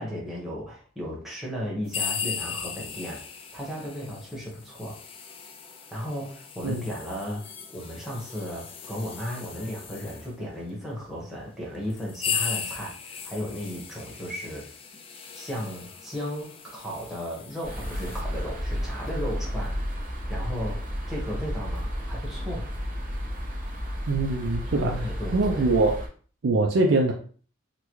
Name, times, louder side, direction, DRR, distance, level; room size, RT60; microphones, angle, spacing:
voice 1, 0.0-3.3 3.5-5.0 5.9-14.7 15.3-19.8 20.3-22.7 24.8-25.7, equal, ahead, -5 dB, 1.0 m, -35 dB
sound 1, 1.9-10.3 11.1-11.2 11.8-18.2, left 6 dB, 30° left, 0.3 m, -37 dB
sound 2, 17.6-26.1, equal, 40° right, 0.9 m, -32 dB
voice 2, 24.1-24.9 25.3-26.0 26.4-27.1, right 3 dB, 70° right, 0 dB, 0.5 m, -23 dB
3.8 x 2.2 x 3.0 m, 0.43 s
head